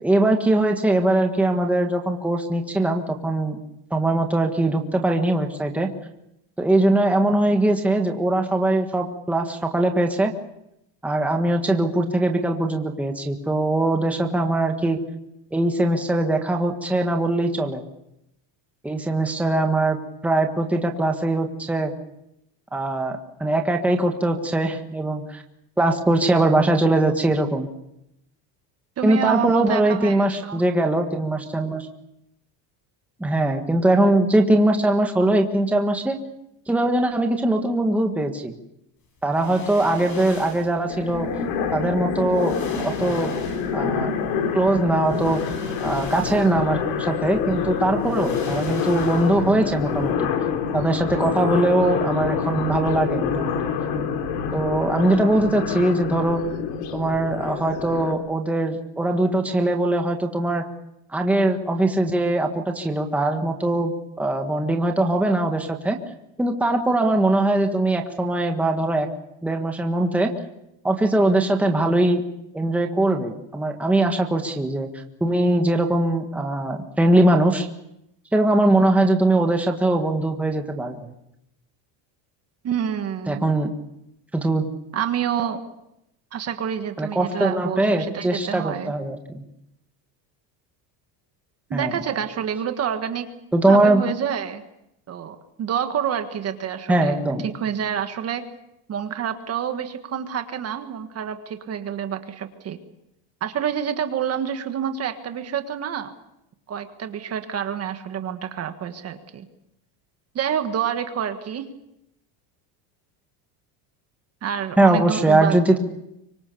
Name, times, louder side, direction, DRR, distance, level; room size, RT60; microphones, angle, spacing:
voice 1, 0.0-3.6 3.9-5.9 6.6-10.3 11.0-15.0 15.5-17.8 18.8-20.0 20.2-21.9 22.7-25.4 25.8-27.7 29.0-31.9 33.2-36.2 36.7-38.5 39.2-41.3 41.7-42.5 42.8-43.3 43.7-44.1 44.5-45.4 45.8-50.3 50.7-53.7 54.5-56.4 56.9-60.6 61.1-66.0 66.4-69.1 69.4-70.3 70.8-72.2 72.5-74.9 75.2-77.7 78.3-81.1 83.3-83.7 84.3-84.6 87.0-89.4 91.7-92.0 93.5-94.0 96.9-97.5 114.8-115.8, right 2 dB, 5° right, 3 dB, 1.6 m, -21 dB
voice 2, 29.0-30.6 82.6-83.4 84.9-85.6 86.3-89.0 91.7-93.3 93.6-94.6 95.1-98.5 98.9-102.8 103.4-106.1 106.7-109.5 110.3-111.7 114.4-115.6, right 8 dB, 30° right, 8 dB, 1.6 m, -28 dB
sound 1, 39.3-40.8 41.9-42.0 42.3-43.9 45.0-46.7 47.1-47.2 48.0-49.6 49.9-50.0, left 3 dB, 40° left, 7.3 m, -39 dB
sound 2, 40.9-58.1, left 7 dB, 65° left, 3.4 m, -27 dB
25.0 x 23.5 x 7.0 m, 0.84 s
cardioid pair, 160°, 48 cm